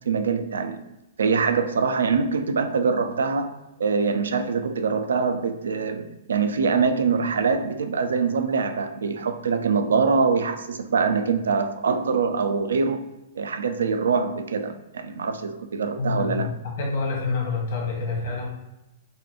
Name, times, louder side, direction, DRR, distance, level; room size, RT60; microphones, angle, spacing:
voice 1, 0.1-0.8 1.2-13.1 13.4-16.5, right 5 dB, 70° right, 8 dB, 0.4 m, -24 dB
voice 2, 16.0-18.5, left 4 dB, 55° left, -2 dB, 1.3 m, -27 dB
5.3 x 2.3 x 2.7 m, 0.98 s
figure-of-eight pair, 110°, 0 cm